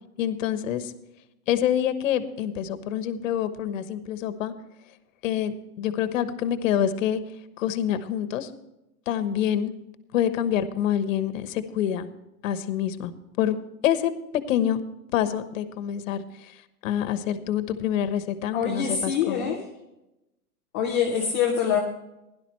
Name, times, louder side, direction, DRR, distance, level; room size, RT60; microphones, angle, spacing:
voice 1, 0.2-0.9 1.5-4.5 5.2-7.2 7.6-8.5 9.1-9.7 10.1-12.1 12.4-13.1 13.4-13.6 13.8-14.1 14.5-14.8 15.1-16.5 16.8-19.5, left 10 dB, 55° left, 11 dB, 1.2 m, -26 dB
voice 2, 18.5-19.7 20.7-21.8, left 7 dB, 10° left, -1 dB, 0.3 m, -25 dB
16.5 x 11.5 x 3.2 m, 0.91 s
hypercardioid pair, 150°, 46 cm